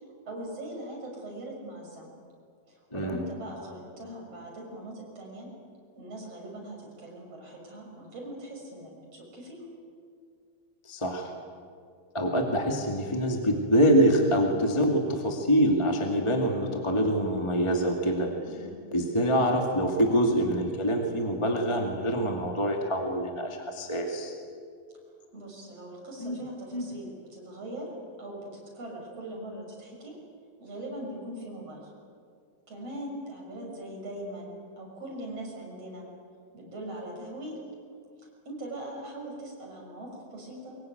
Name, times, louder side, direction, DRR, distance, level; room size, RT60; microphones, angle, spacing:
voice 1, 0.3-2.1 2.7-5.5 6.0-9.7 18.5-18.8 19.2-19.4 25.3-27.9 28.2-30.1 30.6-31.9 32.7-36.1 36.5-37.6 38.5-40.8, right 1 dB, 40° right, -1 dB, 7.0 m, -41 dB
voice 2, 2.9-3.2 10.8-11.3 12.1-18.3 18.9-24.3 26.2-26.4 26.7-26.8, equal, 10° left, 2 dB, 1.6 m, -25 dB
24.5 x 22.5 x 9.4 m, 2.3 s
omnidirectional pair, 4.2 m